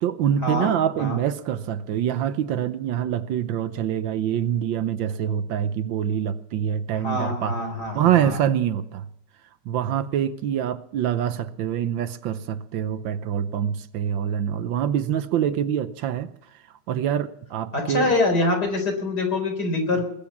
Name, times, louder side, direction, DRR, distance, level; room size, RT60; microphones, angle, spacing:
voice 1, 0.0-7.5 7.9-9.1 9.7-16.3 16.9-18.1, right 9 dB, 75° right, 13 dB, 1.5 m, -25 dB
voice 2, 7.0-8.4 17.7-20.1, left 2 dB, 55° left, 4 dB, 4.8 m, -24 dB
20.5 x 8.6 x 7.2 m, 0.76 s
omnidirectional pair, 2.2 m